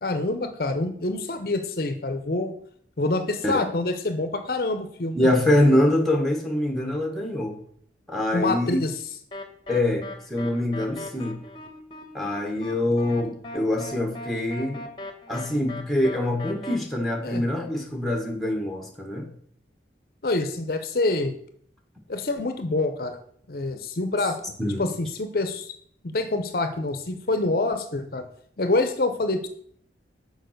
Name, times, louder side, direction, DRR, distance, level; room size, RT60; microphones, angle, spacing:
voice 1, 0.0-2.5 3.0-5.3 8.3-8.9 17.2-17.4 20.2-21.4 22.1-23.2 23.5-24.3 24.8-25.7 26.1-28.2 28.6-29.5, left 2 dB, 55° left, 9 dB, 0.7 m, -26 dB
voice 2, 5.1-7.6 8.1-8.8 9.7-11.4 12.1-14.9 15.3-19.3 24.6-24.9, left 1 dB, ahead, 2 dB, 1.2 m, -24 dB
sound 1, 9.3-16.8, left 2 dB, 25° left, 1.0 m, -39 dB
6.9 x 4.8 x 6.4 m, 0.62 s
head